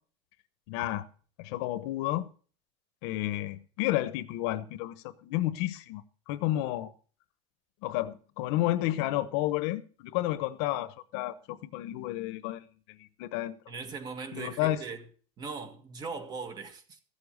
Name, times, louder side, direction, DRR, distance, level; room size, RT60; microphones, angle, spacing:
voice 1, 0.7-1.0 1.4-2.3 3.0-6.9 7.8-12.6 12.9-13.6 14.3-14.8, left 15 dB, 70° left, 1.1 m, -31 dB
voice 2, 13.7-15.1 15.4-17.0, right 5 dB, 30° right, 1.9 m, -39 dB
15.0 x 7.5 x 6.4 m
cardioid pair, 165°, 14 cm